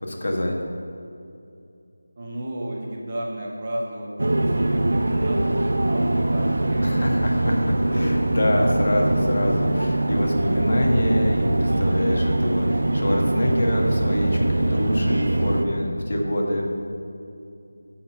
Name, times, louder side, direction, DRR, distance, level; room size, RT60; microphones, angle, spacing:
voice 1, 0.0-0.6 6.8-7.5 7.9-16.6, left 1 dB, 50° left, 0 dB, 1.4 m, -25 dB
voice 2, 2.2-7.2, right 1 dB, 25° right, -3 dB, 1.2 m, -33 dB
sound 1, 4.2-15.6, right 1 dB, 70° right, 0.7 m, -22 dB
11.0 x 4.3 x 5.8 m, 2.6 s
figure-of-eight pair, 175°, 0 cm